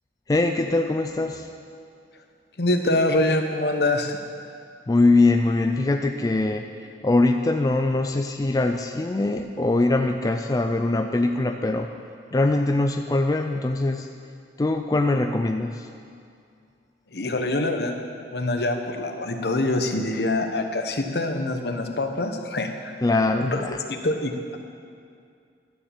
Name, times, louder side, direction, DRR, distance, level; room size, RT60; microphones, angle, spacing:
voice 1, 0.3-1.5 4.9-6.7 7.0-11.9 12.3-14.1 14.6-15.9 23.0-23.8, left 2 dB, 20° left, 5 dB, 0.3 m, -22 dB
voice 2, 2.6-4.2 17.1-17.9 18.3-22.9 23.4-24.6, left 2 dB, 65° left, 5 dB, 1.0 m, -25 dB
12.0 x 7.0 x 7.4 m, 2.3 s
head